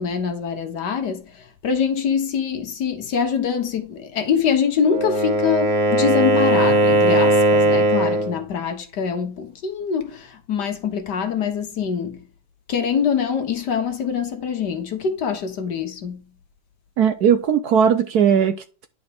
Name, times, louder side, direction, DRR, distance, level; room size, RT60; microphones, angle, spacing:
voice 1, 0.0-12.3 12.7-16.3, left 7 dB, 60° left, 1.7 m, -24 dB
Wind instrument woodwind instrument, 4.8-8.4, right 2 dB, 25° right, 1.5 m, -18 dB
voice 2, 17.0-18.9, right 7 dB, 65° right, 1.1 m, -18 dB
10.5 x 4.2 x 3.5 m
omnidirectional pair, 2.1 m